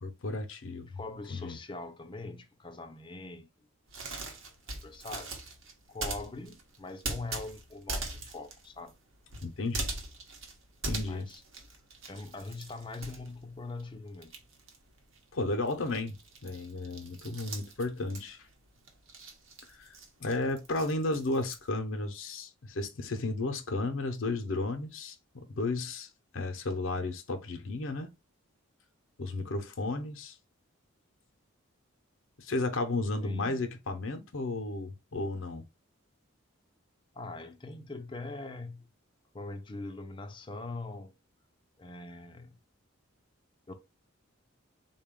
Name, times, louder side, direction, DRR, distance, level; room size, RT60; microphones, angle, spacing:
voice 1, 0.0-0.9 1.3-1.6 9.4-9.9 10.9-11.3 15.3-16.2 16.4-18.5 19.8-19.9 20.2-26.1 26.3-28.1 29.2-30.4 32.4-35.7, left 2 dB, 65° left, 0.6 m, -33 dB
voice 2, 0.9-3.5 4.8-5.3 5.9-8.9 10.9-11.4 12.1-14.3 33.2-33.6 37.1-38.9 39.3-41.1 41.8-42.6 43.7-43.8, left 2 dB, 25° left, 0.5 m, -42 dB
Peeling Cooked Egg, 3.9-13.9 14.1-21.7, right 2 dB, 70° right, 0.9 m, -41 dB
3.7 x 2.2 x 3.6 m
head